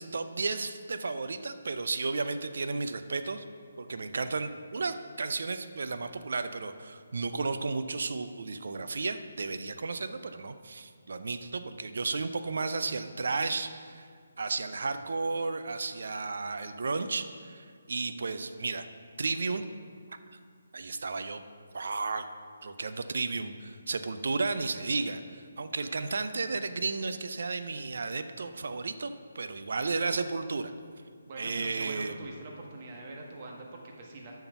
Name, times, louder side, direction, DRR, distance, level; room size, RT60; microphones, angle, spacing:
voice 1, 0.0-3.4 3.8-14.1 14.4-18.8 19.2-19.6 20.7-21.4 21.7-22.3 22.6-30.7 31.4-32.2, right 3 dB, 65° right, 10 dB, 0.5 m, -33 dB
voice 2, 31.3-34.3, right 2 dB, 40° right, 0 dB, 1.4 m, -44 dB
7.0 x 5.9 x 6.9 m, 2.1 s
figure-of-eight pair, 150°, 0 cm